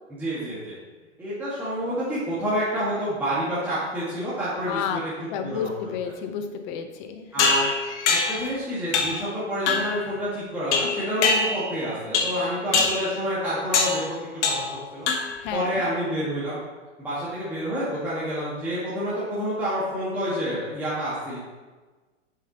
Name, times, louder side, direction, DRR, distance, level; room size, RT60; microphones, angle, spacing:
voice 1, 0.1-0.7 1.2-5.0 5.4-5.9 7.3-7.7 8.1-15.1 15.5-16.6 17.0-21.4, equal, 5° right, -11 dB, 1.6 m, -28 dB
voice 2, 4.6-5.0 5.3-7.5 15.4-15.8, left 7 dB, 40° left, 7 dB, 0.8 m, -31 dB
sound 1, 7.4-8.5 8.9-9.3 9.7-10.0 10.7-11.8 12.1-12.4 12.7-13.1 13.7-14.0 14.4-14.8 15.1-15.5, left 4 dB, 65° left, 1.1 m, -23 dB
7.3 x 6.9 x 2.9 m, 1.3 s
hypercardioid pair, 135°, 37 cm